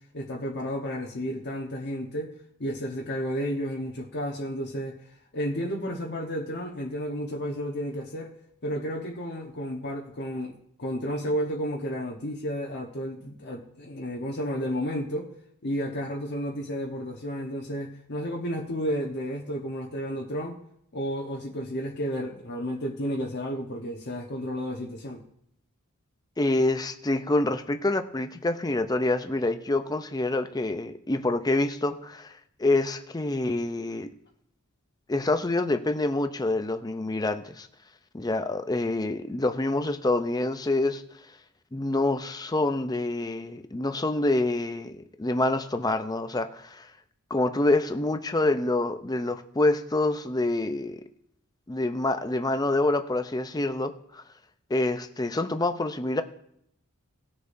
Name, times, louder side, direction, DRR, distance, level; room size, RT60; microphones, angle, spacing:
voice 1, 0.1-2.3 2.6-4.9 5.3-8.3 8.6-15.3 15.6-20.6 20.9-25.2, equal, 50° left, 0 dB, 1.1 m, -32 dB
voice 2, 26.4-34.1 35.1-37.7 38.1-41.0 41.7-46.9 47.3-51.0 51.7-54.2 54.7-56.2, left 2 dB, 15° left, 9 dB, 0.6 m, -26 dB
19.0 x 6.6 x 2.7 m, 0.72 s
head